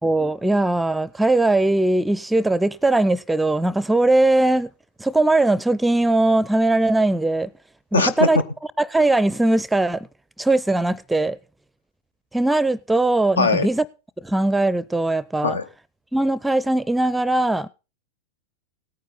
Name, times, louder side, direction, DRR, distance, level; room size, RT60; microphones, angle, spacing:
voice 1, 0.0-4.7 5.0-7.5 7.9-8.4 8.8-10.1 10.4-11.4 12.3-13.8 14.2-15.6 16.1-17.7, right 2 dB, 5° right, 0.5 m, -20 dB
voice 2, 7.9-8.4 13.4-13.7 15.4-15.6, left 3 dB, 75° left, 0.9 m, -20 dB
17.5 x 9.3 x 4.1 m
figure-of-eight pair, 90°, 0 cm